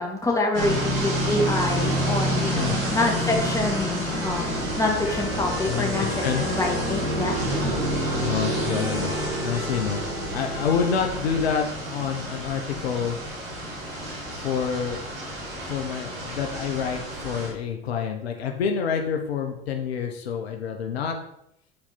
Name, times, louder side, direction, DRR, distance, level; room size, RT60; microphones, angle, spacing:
voice 1, 0.0-7.4, left 2 dB, 10° left, -1 dB, 2.4 m, -26 dB
sound 1, 0.5-17.5, equal, 65° right, 3.2 m, -28 dB
sound 2, 1.7-11.5, left 3 dB, 55° left, 2.8 m, -39 dB
voice 2, 5.7-6.5 8.2-10.0 10.3-13.2 14.4-15.0 15.7-21.2, left 7 dB, 80° left, 4 dB, 1.0 m, -27 dB
9.9 x 4.3 x 4.3 m, 0.77 s
hypercardioid pair, 75°, 31 cm